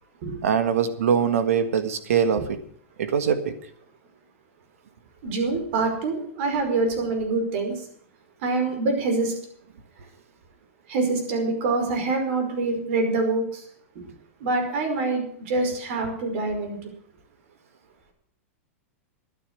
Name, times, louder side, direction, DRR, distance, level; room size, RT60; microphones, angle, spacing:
voice 1, 0.4-2.4 3.0-3.5, right 7 dB, 85° right, 10 dB, 1.7 m, -22 dB
voice 2, 5.2-7.7 8.4-9.3 10.9-13.6 14.4-16.8, right 3 dB, 60° right, 4 dB, 5.1 m, -25 dB
12.0 x 10.0 x 7.8 m, 0.62 s
hypercardioid pair, 125°, 7 cm